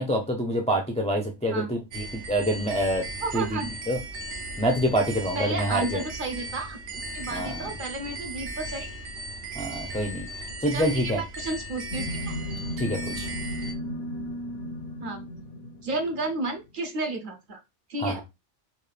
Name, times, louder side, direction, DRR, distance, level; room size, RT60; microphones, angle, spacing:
voice 1, 0.0-3.1 3.3-3.6 3.9-4.0 4.6-6.0 7.3-7.7 9.5-11.2 12.8-13.3 18.0-18.2, equal, 10° left, 2 dB, 0.4 m, -26 dB
sound 1, 1.9-13.7, right 2 dB, 75° right, 1.0 m, -37 dB
voice 2, 3.2-3.7 5.3-6.8 7.1-9.0 10.7-12.4 15.0-15.2 15.8-17.6 17.9-18.2, right 2 dB, 50° right, 3 dB, 0.9 m, -32 dB
sound 2, 11.9-16.5, left 1 dB, 65° left, 0.9 m, -35 dB
4.3 x 2.5 x 3.3 m, 0.24 s
omnidirectional pair, 1.2 m